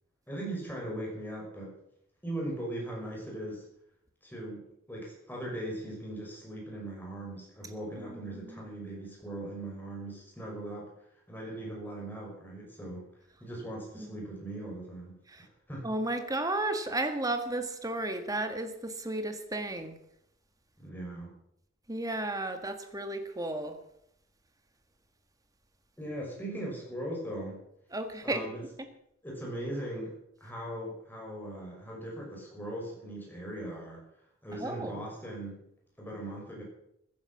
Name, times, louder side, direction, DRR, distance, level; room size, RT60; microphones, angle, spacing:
voice 1, 0.3-1.7 2.2-3.6 4.2-10.9 11.3-13.1 13.4-15.2 15.7-15.9 20.8-21.3 26.0-27.6 28.2-28.6 29.2-30.1 30.4-34.0 34.4-35.6 36.0-36.6, right 1 dB, 10° left, -2 dB, 5.9 m, -39 dB
voice 2, 8.0-8.7 13.9-14.2 15.3-15.4 15.8-20.0 21.9-23.8 27.9-28.4 28.8-28.9 34.5-35.0, right 2 dB, 20° right, 8 dB, 1.6 m, -34 dB
15.0 x 10.5 x 7.3 m, 0.76 s
head